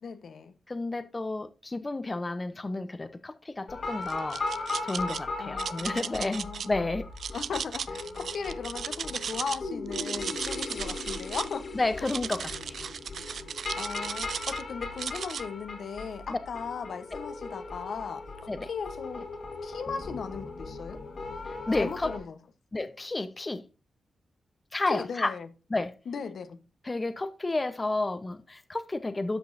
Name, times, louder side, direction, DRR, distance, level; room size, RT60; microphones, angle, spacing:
voice 1, 0.0-0.5 5.4-6.9 7.3-11.7 12.4-12.5 13.2-13.5 13.8-19.3 19.6-21.0 21.7-22.4 24.9-25.5 26.1-26.6, left 6 dB, 70° left, 1.0 m, -37 dB
voice 2, 0.7-4.4 4.8-7.1 11.7-12.9 16.3-16.4 18.5-18.7 21.7-22.1 22.7-23.6 24.7-25.3 25.7-25.9 26.8-29.4, left 2 dB, 25° left, 0.8 m, -31 dB
sound 1, 3.7-22.2, left 3 dB, 50° left, 1.9 m, -38 dB
sound 2, 4.1-5.2 5.6-6.7 7.2-9.6 9.9-11.5 12.0-14.6 15.0-15.4, right 7 dB, 70° right, 0.4 m, -36 dB
12.5 x 5.3 x 2.6 m
cardioid pair, 85°, 0 cm